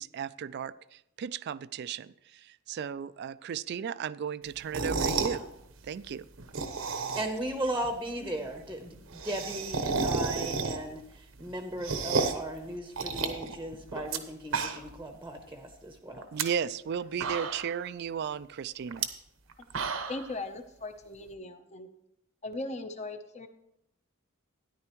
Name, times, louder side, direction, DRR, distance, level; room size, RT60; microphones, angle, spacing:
voice 1, 0.0-5.4 5.8-6.3 16.3-19.1, right 7 dB, 55° right, 17 dB, 0.3 m, -35 dB
sound 1, 4.6-5.4 6.4-7.5 7.8-7.9 8.1-8.2 8.5-8.6 8.8-11.0 11.4-12.5 13.0-14.2 14.4-15.0 15.4-15.5 16.2-16.4 16.9-17.0 17.2-17.8 18.9-19.1 19.5-20.3, right 4 dB, 85° right, 1.0 m, -31 dB
voice 2, 7.1-16.2, right 1 dB, 10° right, 5 dB, 0.8 m, -37 dB
voice 3, 20.1-21.9 22.4-23.5, left 2 dB, 35° left, 7 dB, 0.7 m, -39 dB
13.0 x 10.5 x 3.0 m, 0.82 s
head